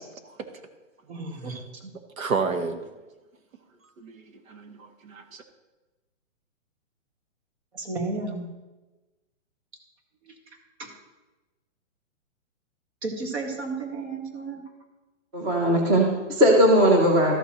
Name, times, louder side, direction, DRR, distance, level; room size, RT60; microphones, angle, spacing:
voice 1, 1.1-1.5 1.8-1.9 7.7-8.5 10.8-10.9 13.0-14.6, right 3 dB, 55° right, 2 dB, 2.1 m, -32 dB
voice 2, 2.2-2.8 4.0-5.4, right 5 dB, 85° right, 6 dB, 1.3 m, -31 dB
voice 3, 15.3-17.4, equal, 15° right, 0 dB, 0.8 m, -19 dB
13.5 x 6.8 x 3.1 m, 1.1 s
hypercardioid pair, 160°, 40 cm